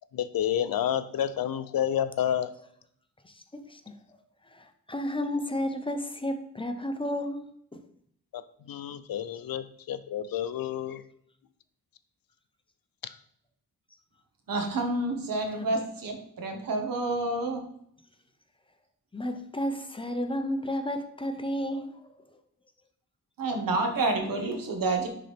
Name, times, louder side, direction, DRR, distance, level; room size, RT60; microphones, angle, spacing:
voice 1, 0.1-2.5 8.7-11.0, left 10 dB, 85° left, 0.6 m, -29 dB
voice 2, 3.5-3.9 4.5-7.8 15.6-15.7 19.1-21.9, left 1 dB, 15° left, 0.6 m, -32 dB
voice 3, 14.5-17.6 23.4-25.1, right 2 dB, 75° right, 1.4 m, -29 dB
9.9 x 3.8 x 3.4 m
wide cardioid pair, 115°, 34 cm